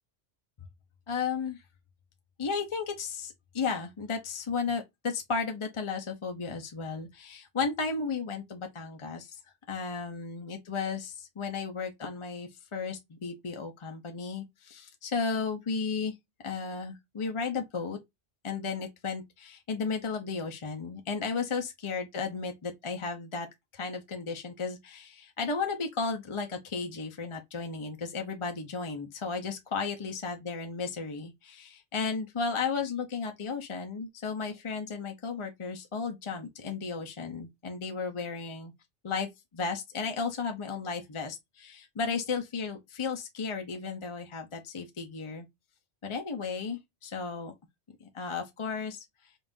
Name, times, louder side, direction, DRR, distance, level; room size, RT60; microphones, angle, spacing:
voice 1, 1.1-1.6 2.4-9.4 9.7-16.2 16.4-18.0 18.4-23.5 23.7-38.7 39.0-45.5 46.0-47.5 48.0-49.1, left 5 dB, 35° left, 0.5 m, -34 dB
5.2 x 2.4 x 2.5 m
omnidirectional pair, 1.2 m